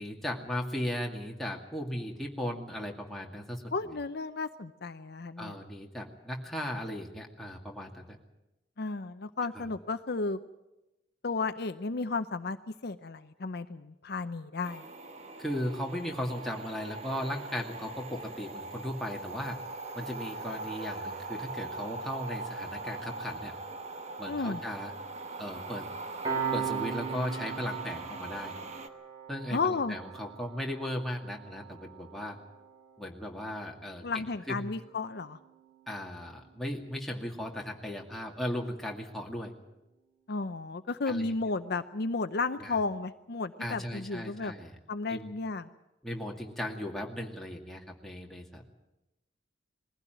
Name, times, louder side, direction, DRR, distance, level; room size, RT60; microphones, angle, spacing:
voice 1, 0.0-3.9 5.4-8.1 9.5-9.7 15.4-19.6 19.9-23.5 24.2-24.9 25.4-25.9 26.5-28.5 29.3-32.4 33.0-34.7 35.9-39.5 41.1-41.3 42.6-42.8 43.6-44.8 45.1-45.3 46.0-48.6, equal, ahead, -1 dB, 2.3 m, -37 dB
voice 2, 3.7-5.5 8.8-10.4 11.2-12.6 12.8-14.8 24.3-24.6 29.5-30.0 34.0-35.4 40.3-44.5 44.9-45.7, left 3 dB, 55° left, 10 dB, 0.7 m, -33 dB
sound 1, 14.6-28.9, right 3 dB, 40° right, 1.2 m, -41 dB
Piano, 26.2-37.3, right 7 dB, 20° right, 4.1 m, -41 dB
21.0 x 16.0 x 9.2 m, 0.96 s
head